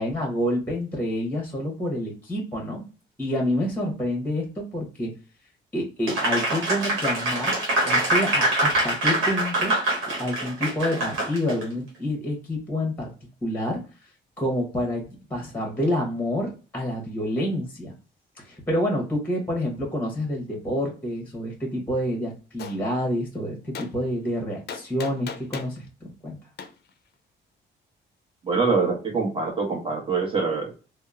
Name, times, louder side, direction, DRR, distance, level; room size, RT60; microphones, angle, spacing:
voice 1, 0.0-2.8 3.2-5.1 5.7-7.6 7.8-9.7 10.2-13.1 13.4-13.8 14.4-15.0 15.3-17.9 18.4-25.9 26.2-26.4, left 1 dB, 10° left, 0 dB, 0.9 m, -28 dB
Applause, 6.1-11.6, right 1 dB, 90° right, 1.0 m, -24 dB
Gunshot gunfire, 22.6-22.8 23.7-23.9 24.7-25.8 26.6-26.7, left 6 dB, 55° left, 0.4 m, -36 dB
voice 2, 28.4-30.8, right 4 dB, 25° right, 0 dB, 1.1 m, -24 dB
2.8 x 2.0 x 2.3 m, 0.35 s
cardioid pair, 90°, 20 cm